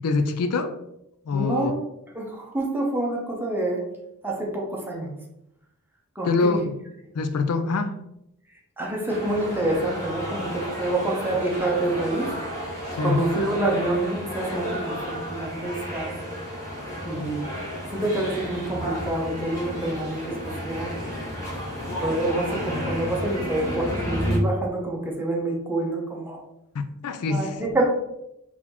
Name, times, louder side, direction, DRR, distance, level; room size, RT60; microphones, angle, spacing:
voice 1, 0.0-0.8 1.3-1.7 6.2-6.6 7.1-7.9 12.9-13.2 26.7-27.5, left 3 dB, 75° left, 9 dB, 0.4 m, -24 dB
voice 2, 1.3-1.8 2.1-3.8 4.2-5.1 6.1-6.6 8.8-12.3 12.7-16.1 17.0-17.4 17.9-20.9 22.0-26.4 27.3-27.8, right 2 dB, 10° right, -1 dB, 0.9 m, -27 dB
sound 1, 9.1-24.4, equal, 15° left, 1.5 m, -32 dB
4.1 x 2.9 x 4.1 m, 0.83 s
head